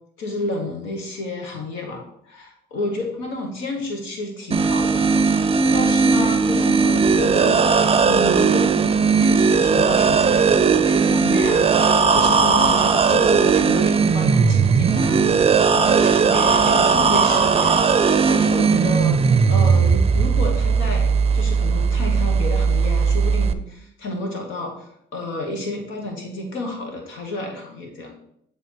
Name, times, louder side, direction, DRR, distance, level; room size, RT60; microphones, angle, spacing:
voice 1, 0.2-2.3 2.7-5.2 5.5-7.6 8.0-28.1, left 2 dB, 80° left, 2 dB, 1.4 m, -30 dB
sound 1, 4.5-23.5, right 5 dB, 30° right, 0.5 m, -17 dB
8.8 x 3.3 x 4.5 m, 0.72 s
supercardioid pair, 75°, 20 cm